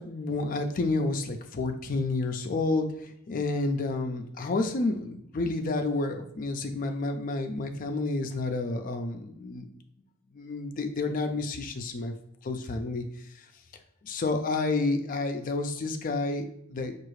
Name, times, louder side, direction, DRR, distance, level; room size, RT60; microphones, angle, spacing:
voice 1, 0.0-9.7 10.3-12.1 12.4-13.0 14.0-17.0, left 3 dB, 40° left, 6 dB, 0.4 m, -30 dB
4.5 x 2.4 x 3.1 m, 0.74 s
head